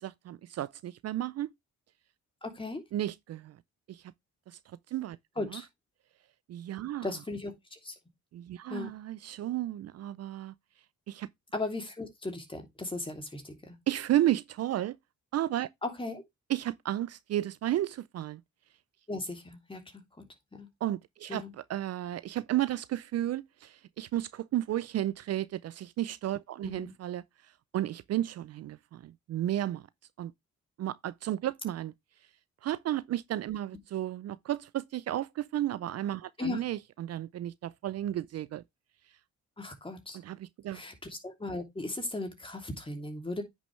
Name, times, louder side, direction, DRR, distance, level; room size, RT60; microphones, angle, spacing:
voice 1, 0.0-1.5 2.9-3.6 3.9-4.0 4.5-4.6 4.9-5.2 5.5-5.6 6.5-7.1 8.3-10.5 11.1-11.3 13.9-15.0 15.3-15.7 16.5-18.4 20.8-27.2 27.7-29.8 30.2-30.3 30.8-31.9 32.6-38.6 40.1-40.8, right 13 dB, 55° right, 0.5 m, -33 dB
voice 2, 2.4-2.8 5.4-5.7 7.0-7.9 8.7-8.9 11.5-13.8 15.8-16.2 19.1-20.0 20.5-20.7 21.3-21.5 26.6-26.9 36.4-36.6 39.6-40.2 40.7-43.4, left 2 dB, 15° left, 2.9 m, -37 dB
9.5 x 6.2 x 3.2 m
cardioid pair, 90°, 30 cm